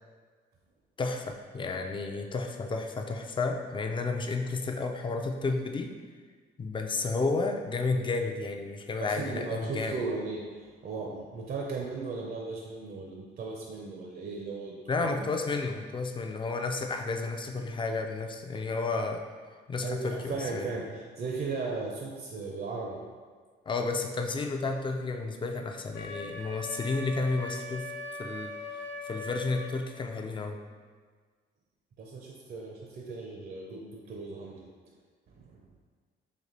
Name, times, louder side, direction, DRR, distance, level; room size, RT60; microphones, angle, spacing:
voice 1, 1.0-5.9 6.6-10.0 14.9-19.2 19.7-20.7 23.7-27.9 28.2-28.5 29.0-30.6, left 3 dB, 25° left, 4 dB, 0.4 m, -32 dB
voice 2, 9.0-10.4 10.8-14.7 15.0-15.6 19.8-23.0 32.0-34.7 35.4-35.6, right 4 dB, 50° right, -1 dB, 0.5 m, -37 dB
Wind instrument woodwind instrument, 25.9-29.7, left 2 dB, 75° left, 0.6 m, -40 dB
4.0 x 2.8 x 3.2 m, 1.6 s
cardioid pair, 90°, 20 cm